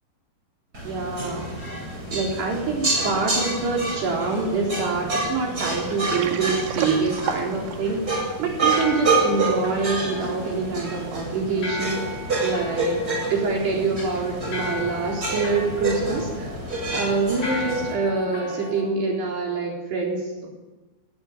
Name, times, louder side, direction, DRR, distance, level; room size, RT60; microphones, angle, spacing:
sound 1, 0.7-17.9, right 3 dB, 20° right, 8.2 m, -28 dB
voice 1, 0.8-1.5 2.1-12.0 12.4-16.6 16.9-20.5, right 4 dB, 70° right, -2 dB, 6.2 m, -26 dB
sound 2, 1.2-18.8, left 2 dB, 55° left, 9.6 m, -38 dB
Water, 5.8-9.0, right 7 dB, 90° right, 4.6 m, -32 dB
28.0 x 20.0 x 9.7 m, 1.2 s
omnidirectional pair, 5.0 m